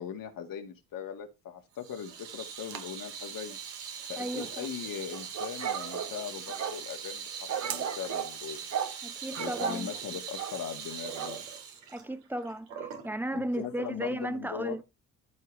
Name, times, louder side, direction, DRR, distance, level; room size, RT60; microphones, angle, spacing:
voice 1, 0.0-3.6 4.1-8.7 9.4-11.5 13.3-14.8, left 8 dB, 55° left, 1.7 m, -40 dB
sound 1, 1.6-8.8, right 10 dB, 60° right, 1.4 m, -48 dB
Water tap faucet / Sink (filling or washing), 1.8-13.1, right 7 dB, 80° right, 2.1 m, -41 dB
voice 2, 4.2-4.7 9.0-9.9 11.9-12.7 13.0-14.8, right 1 dB, 5° right, 1.0 m, -35 dB
sound 2, 5.1-6.8 7.5-8.3 8.7-9.0 9.3-9.8 10.4-10.6 11.2-11.4, right 8 dB, 45° right, 1.2 m, -35 dB
13.5 x 4.6 x 3.2 m
hypercardioid pair, 60°, 39 cm